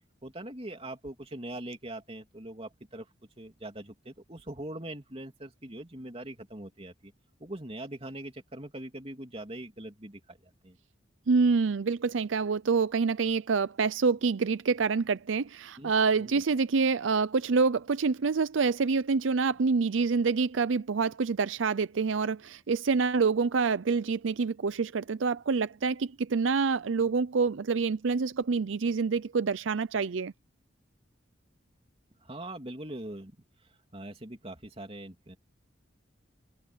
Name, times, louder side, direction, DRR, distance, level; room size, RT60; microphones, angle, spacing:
voice 1, 0.2-3.1 3.4-7.1 7.4-10.8 15.8-16.4 32.2-33.4 33.9-35.4, right 1 dB, 30° right, 3.1 m, -42 dB
voice 2, 11.3-30.3, right 4 dB, 85° right, 0.5 m, -27 dB
head